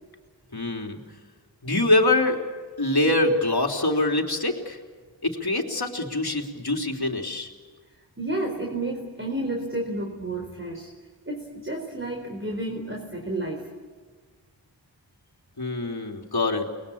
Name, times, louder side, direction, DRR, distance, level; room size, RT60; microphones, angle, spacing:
voice 1, 0.5-1.0 1.6-2.4 2.8-4.8 5.2-7.5 15.6-16.7, left 2 dB, 55° left, 2 dB, 3.6 m, -24 dB
voice 2, 8.2-10.9 11.3-13.7, right 2 dB, 25° right, 2 dB, 4.3 m, -31 dB
29.5 x 21.5 x 8.6 m, 1.5 s
wide cardioid pair, 45°, 45 cm